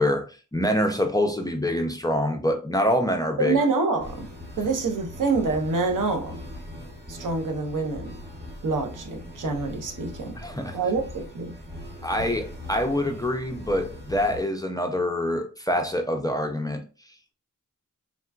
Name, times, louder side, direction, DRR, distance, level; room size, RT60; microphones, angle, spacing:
voice 1, 0.0-3.6 10.4-10.8 12.0-16.8, left 1 dB, 10° left, 0.4 m, -25 dB
voice 2, 3.4-4.3 4.6-6.4 7.1-8.1 8.6-10.4 10.7-11.5, right 3 dB, 75° right, 0.7 m, -26 dB
sound 1, 4.0-14.4, left 1 dB, 30° right, 1.0 m, -40 dB
3.7 x 2.2 x 2.3 m
wide cardioid pair, 100°, 32 cm